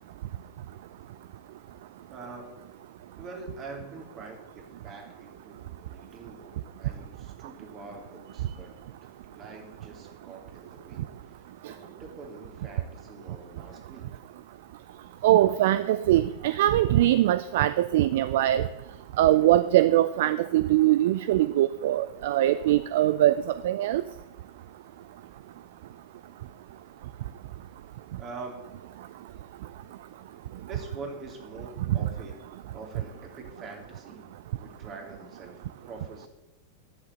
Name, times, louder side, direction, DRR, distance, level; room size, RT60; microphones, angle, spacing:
voice 1, 2.1-2.7 3.2-8.8 9.3-11.1 11.6-14.2 28.2-28.8 30.3-30.4 30.7-32.4 32.7-34.2 34.6-36.3, right 3 dB, 30° right, 3 dB, 3.3 m, -44 dB
voice 2, 15.2-18.7 19.2-23.3 23.6-24.0 31.9-32.0, right 14 dB, 55° right, 15 dB, 0.4 m, -22 dB
11.0 x 7.4 x 9.5 m, 1.1 s
figure-of-eight pair, 90°, 0 cm